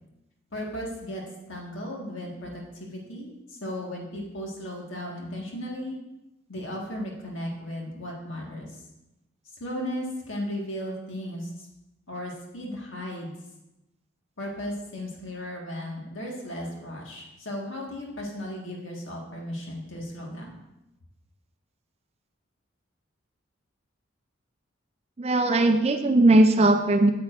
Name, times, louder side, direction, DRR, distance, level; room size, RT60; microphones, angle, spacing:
voice 1, 0.5-1.2 1.5-6.0 6.5-8.8 9.6-11.7 12.1-13.3 14.4-20.5, equal, 75° left, -1 dB, 1.6 m, -35 dB
voice 2, 25.2-27.1, right 2 dB, 30° right, 7 dB, 0.4 m, -19 dB
8.7 x 7.2 x 2.5 m, 0.93 s
head